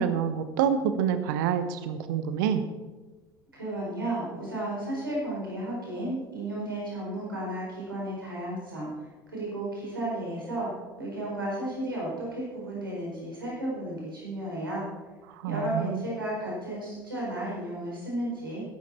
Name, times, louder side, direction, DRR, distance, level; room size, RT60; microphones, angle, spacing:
voice 1, 0.0-2.6 15.4-16.0, right 8 dB, 65° right, 11 dB, 0.9 m, -27 dB
voice 2, 3.5-8.9 9.3-10.7 11.0-14.8 15.4-18.6, right 1 dB, 85° right, -5 dB, 4.7 m, -33 dB
14.0 x 11.0 x 4.3 m, 1.2 s
figure-of-eight pair, 65°, 11 cm